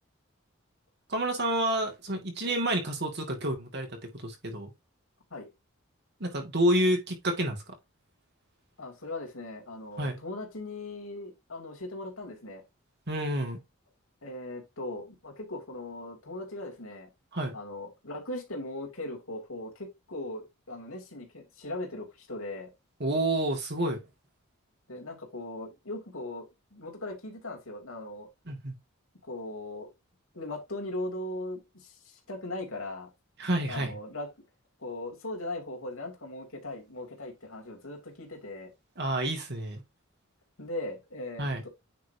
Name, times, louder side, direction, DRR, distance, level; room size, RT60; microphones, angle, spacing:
voice 1, 1.1-4.7 6.2-7.7 10.0-10.2 13.1-13.6 17.3-17.5 23.0-24.0 28.5-28.8 33.4-33.9 39.0-39.8 41.4-41.6, right 1 dB, 55° right, 2.4 m, -29 dB
voice 2, 8.8-12.6 14.2-17.1 17.5-22.7 24.9-26.4 26.7-28.3 29.3-29.9 30.3-33.1 33.7-34.3 34.8-38.7 40.6-41.7, left 2 dB, 80° left, 3.0 m, -39 dB
9.3 x 4.6 x 2.9 m
head